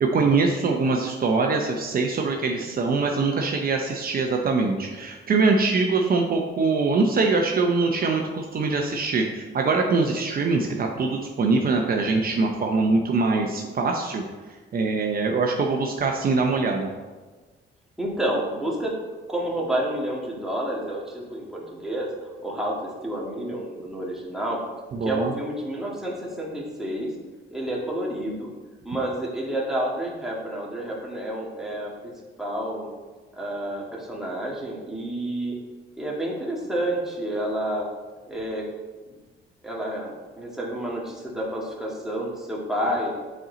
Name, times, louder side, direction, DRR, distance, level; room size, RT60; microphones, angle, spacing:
voice 1, 0.0-14.2 14.7-16.9 24.9-25.3, right 4 dB, 50° right, 2 dB, 0.7 m, -23 dB
voice 2, 18.0-18.9 19.3-22.1 22.4-24.6 25.0-27.1 27.5-28.5 28.8-32.1 32.4-32.9 33.3-35.6 36.0-37.9 38.3-38.6 39.1-39.2 39.6-43.1, right 1 dB, ahead, -4 dB, 1.9 m, -29 dB
7.6 x 4.4 x 3.9 m, 1.3 s
cardioid pair, 90°, 20 cm